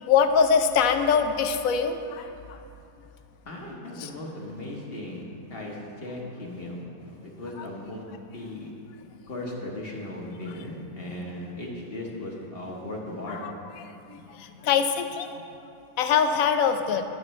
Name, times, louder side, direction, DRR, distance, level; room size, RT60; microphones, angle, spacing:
voice 1, 0.0-2.6 4.0-4.1 13.4-13.5 14.1-15.4 16.0-17.0, left 6 dB, 70° left, 8 dB, 1.0 m, -23 dB
voice 2, 3.4-5.2 5.5-8.0 8.3-8.7 9.3-13.4, left 1 dB, 40° left, -2 dB, 1.4 m, -37 dB
19.0 x 6.7 x 3.2 m, 2.6 s
omnidirectional pair, 1.6 m